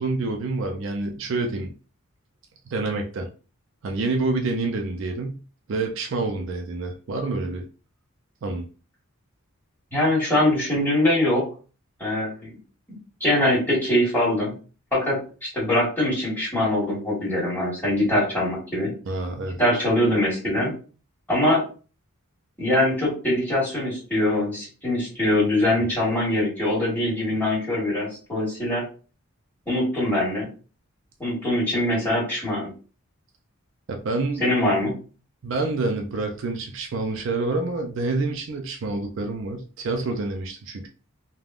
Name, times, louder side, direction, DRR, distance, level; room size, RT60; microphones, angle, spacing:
voice 1, 0.0-1.7 2.7-3.3 3.8-5.4 5.7-7.6 8.4-8.7 19.1-19.6 33.9-34.4 35.4-40.9, right 3 dB, 60° right, 3 dB, 0.4 m, -27 dB
voice 2, 9.9-11.4 12.0-12.5 13.2-14.5 14.9-18.9 19.6-20.7 21.3-21.6 22.6-28.8 29.7-30.5 31.2-32.7 34.4-35.0, left 1 dB, 10° left, -7 dB, 1.5 m, -23 dB
3.4 x 2.2 x 2.4 m, 0.37 s
head